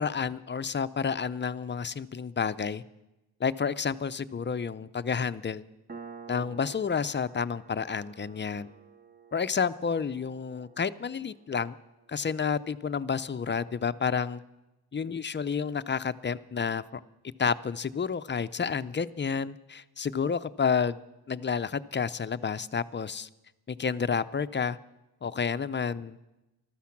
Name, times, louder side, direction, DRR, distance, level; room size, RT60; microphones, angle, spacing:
voice 1, 0.0-2.8 3.4-5.6 6.3-8.7 9.3-11.8 12.1-14.4 14.9-17.0 17.4-21.0 21.3-23.3 23.7-24.8 25.2-26.2, left 6 dB, 30° left, 14 dB, 0.4 m, -30 dB
Piano, 5.9-13.1, right 5 dB, 25° right, 0.7 m, -51 dB
14.5 x 13.0 x 5.9 m, 0.97 s
wide cardioid pair, 120°, 40 cm